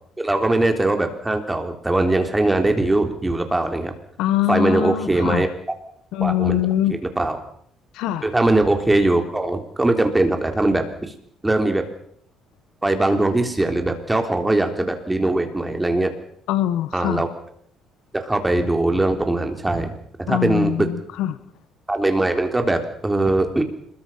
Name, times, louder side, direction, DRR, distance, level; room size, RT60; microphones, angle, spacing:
voice 1, 0.2-3.9 4.5-5.5 6.2-6.6 7.1-7.4 8.2-11.1 11.4-11.8 12.8-16.1 16.9-17.3 18.1-20.9 21.9-23.7, right 2 dB, 10° right, 6 dB, 3.5 m, -21 dB
voice 2, 4.2-5.4 6.1-7.0 7.9-8.3 16.5-17.3 20.3-21.4, left 12 dB, 85° left, 14 dB, 1.4 m, -23 dB
26.5 x 22.0 x 5.7 m, 0.64 s
cardioid pair, 125°, 0 cm